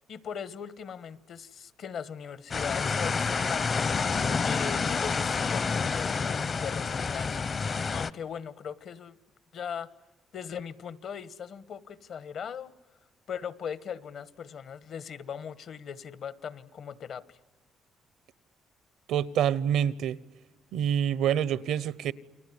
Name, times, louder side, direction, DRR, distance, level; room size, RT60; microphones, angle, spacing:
voice 1, 0.1-7.4 7.7-9.1 9.5-9.9 10.3-12.7 13.3-17.4, left 7 dB, 65° left, 1.3 m, -39 dB
sound 1, 2.5-8.1, left 5 dB, 40° left, 0.8 m, -28 dB
voice 2, 19.1-20.2 20.7-22.1, right 9 dB, 85° right, 0.9 m, -26 dB
29.5 x 20.5 x 9.7 m
cardioid pair, 90°, 0 cm